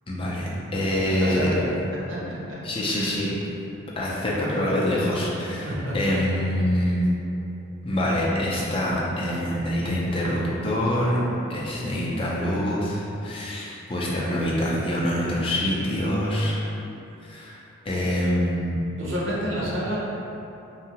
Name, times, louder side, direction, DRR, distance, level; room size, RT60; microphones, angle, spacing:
voice 1, 0.1-1.5 2.6-3.4 4.0-5.7 5.9-7.0 7.8-11.2 11.5-16.6 17.2-17.6 17.9-18.8, equal, 25° left, -5 dB, 0.4 m, -25 dB
voice 2, 0.9-1.7 2.1-2.2 2.5-2.6 2.9-3.2 5.6-6.5 19.0-20.0, equal, 70° right, -6 dB, 0.6 m, -30 dB
2.7 x 2.3 x 2.8 m, 2.9 s
head